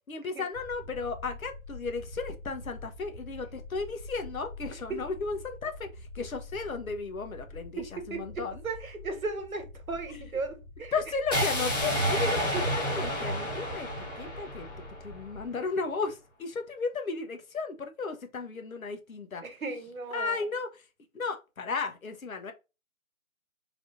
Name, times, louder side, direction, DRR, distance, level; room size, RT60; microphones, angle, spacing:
voice 1, 0.1-5.9 6.1-8.5 10.9-14.7 15.0-19.4 20.1-20.7 21.1-22.5, left 4 dB, 85° left, 1.2 m, -34 dB
sound 1, 0.5-15.5, left 2 dB, 45° left, 1.2 m, -46 dB
voice 2, 7.8-10.9 12.5-12.7 19.4-20.5, right 3 dB, 90° right, 1.3 m, -36 dB
sound 2, 11.3-15.4, equal, 15° left, 1.2 m, -30 dB
3.5 x 3.1 x 2.6 m
hypercardioid pair, 170°, 41 cm